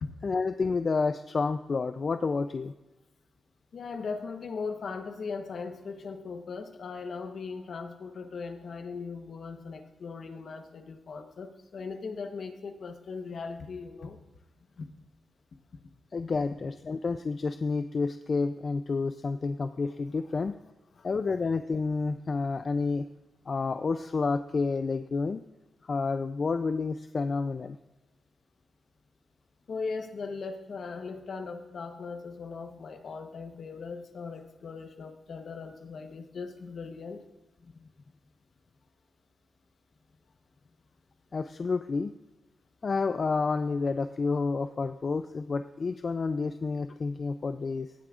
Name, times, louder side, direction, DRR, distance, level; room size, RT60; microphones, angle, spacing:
voice 1, 0.2-2.7 16.1-20.6 21.0-23.1 23.5-25.4 25.8-27.8 41.3-42.1 42.8-47.9, left 4 dB, 40° left, 9 dB, 0.3 m, -29 dB
voice 2, 3.7-14.2 14.8-14.9 21.0-21.1 29.7-37.2, left 4 dB, 60° left, 7 dB, 1.0 m, -39 dB
16.5 x 8.5 x 2.4 m, 1.1 s
wide cardioid pair, 120°, 0 cm